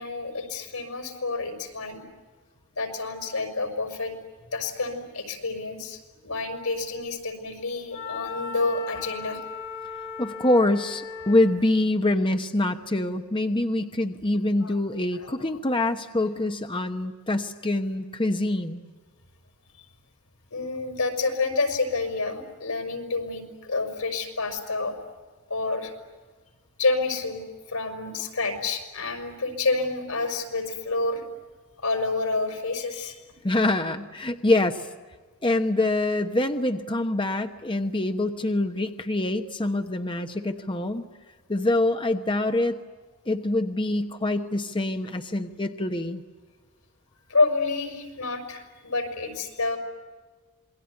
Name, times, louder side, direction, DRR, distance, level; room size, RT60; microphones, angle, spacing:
voice 1, 0.0-2.0 2.7-4.1 4.5-9.4 11.3-11.4 14.6-14.8 15.1-15.3 20.5-24.9 25.5-25.9 26.8-31.2 31.8-33.2 47.3-49.8, left 3 dB, 90° left, 7 dB, 5.7 m, -28 dB
Wind instrument woodwind instrument, 7.9-11.6, left 5 dB, 45° left, 4.7 m, -37 dB
voice 2, 10.2-18.8 33.4-34.9 35.4-41.0 41.5-42.8 43.3-46.2, left 2 dB, 25° left, 6 dB, 1.1 m, -25 dB
27.5 x 21.5 x 9.7 m, 1.3 s
head